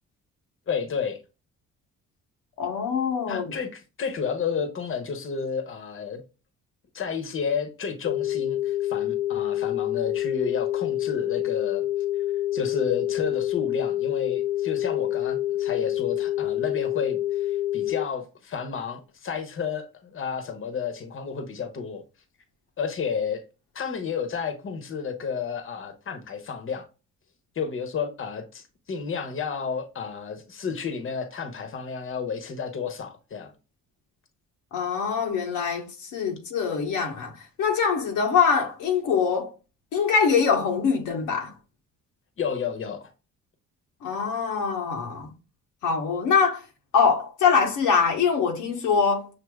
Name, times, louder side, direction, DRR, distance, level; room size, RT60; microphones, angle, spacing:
voice 1, 0.7-1.2 3.3-6.2 6.9-11.9 12.5-22.0 22.8-23.4 23.7-26.9 27.5-33.5 42.4-43.1, left 6 dB, 45° left, 1.0 m, -31 dB
voice 2, 2.6-3.5 34.7-39.5 39.9-41.5 44.0-45.3 45.8-46.6 46.9-49.3, left 6 dB, 90° left, 1.1 m, -23 dB
sound 1, 8.0-18.0, left 13 dB, 70° left, 0.5 m, -27 dB
6.5 x 2.7 x 2.3 m
cardioid pair, 90°, 30 cm